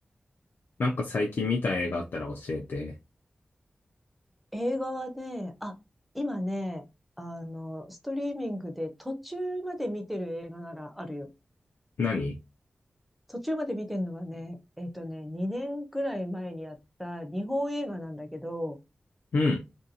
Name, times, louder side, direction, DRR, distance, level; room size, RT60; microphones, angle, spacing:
voice 1, 0.8-2.9 12.0-12.4 19.3-19.6, left 3 dB, 85° left, 1 dB, 0.4 m, -28 dB
voice 2, 4.5-5.7 6.1-6.8 7.2-11.3 13.3-18.8, equal, ahead, 6 dB, 0.5 m, -34 dB
2.5 x 2.2 x 2.7 m, 0.26 s
wide cardioid pair, 120°, 3 cm